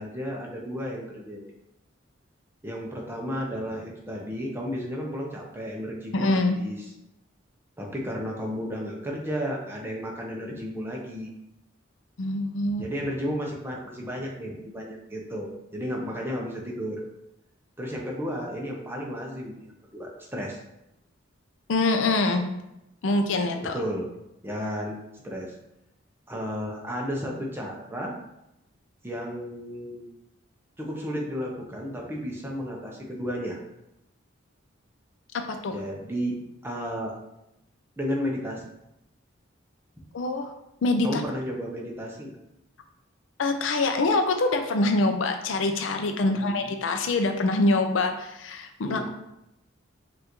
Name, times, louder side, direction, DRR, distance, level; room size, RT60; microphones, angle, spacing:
voice 1, 0.0-1.4 2.6-6.8 7.8-11.3 12.8-17.0 17.8-20.6 23.6-24.1 24.4-24.9 25.2-25.5 26.3-28.1 29.0-30.1 30.8-33.6 35.7-37.1 38.0-38.6 41.0-42.3 46.2-46.5 48.8-49.1, equal, 10° right, -1 dB, 0.6 m, -33 dB
voice 2, 6.1-6.6 12.2-12.8 21.7-22.5 23.0-23.7 35.3-35.7 40.1-40.5 40.8-41.2 43.4-49.1, left 2 dB, 75° left, 6 dB, 0.5 m, -24 dB
5.4 x 2.5 x 3.0 m, 0.87 s
head